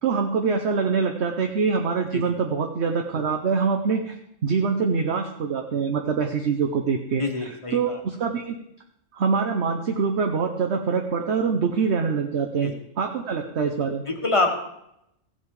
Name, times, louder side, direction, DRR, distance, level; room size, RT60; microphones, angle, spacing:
voice 1, 0.0-4.2 4.4-8.6 9.1-14.1, right 5 dB, 55° right, 4 dB, 1.2 m, -24 dB
voice 2, 7.2-8.0 12.6-12.7 14.1-14.6, left 2 dB, 25° left, 3 dB, 1.5 m, -26 dB
15.0 x 8.4 x 4.8 m, 0.80 s
omnidirectional pair, 1.4 m